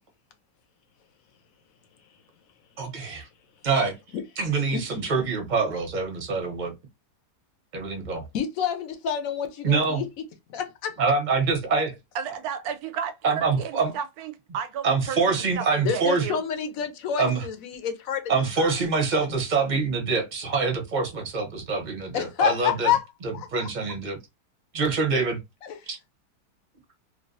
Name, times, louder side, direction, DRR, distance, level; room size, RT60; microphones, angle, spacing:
voice 1, 2.8-3.3 3.6-3.9 4.4-6.7 7.7-8.2 9.6-10.0 11.0-11.9 13.2-13.9 14.8-16.3 17.2-17.4 18.3-22.9 23.5-24.2 24.7-25.4 25.9-26.0, right 4 dB, 35° right, 0.9 m, -25 dB
voice 2, 4.7-5.1 8.3-10.1 10.5-11.0 15.8-18.3 18.6-18.7 22.1-23.1 23.3-23.7 25.6-25.8, left 8 dB, 65° left, 1.1 m, -28 dB
voice 3, 12.1-16.4, right 7 dB, 75° right, 1.0 m, -34 dB
3.3 x 2.5 x 2.5 m
omnidirectional pair, 1.7 m